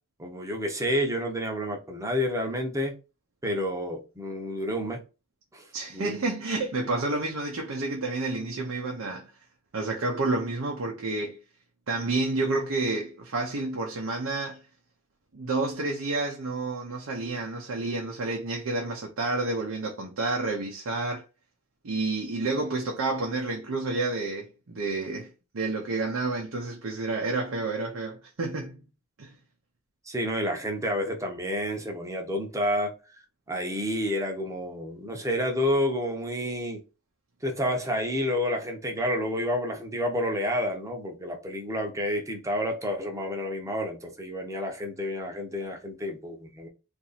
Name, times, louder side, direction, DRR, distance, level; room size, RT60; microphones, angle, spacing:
voice 1, 0.2-3.0 3.4-5.0 5.5-5.6 5.9-6.2 30.0-32.9 33.5-36.8 37.4-46.7, equal, 15° right, 0.7 m, -29 dB
voice 2, 5.7-9.3 9.7-11.4 11.9-14.6 15.3-21.2 21.8-28.8 29.2-29.3, right 3 dB, 75° right, 0.7 m, -30 dB
2.9 x 2.6 x 4.0 m
head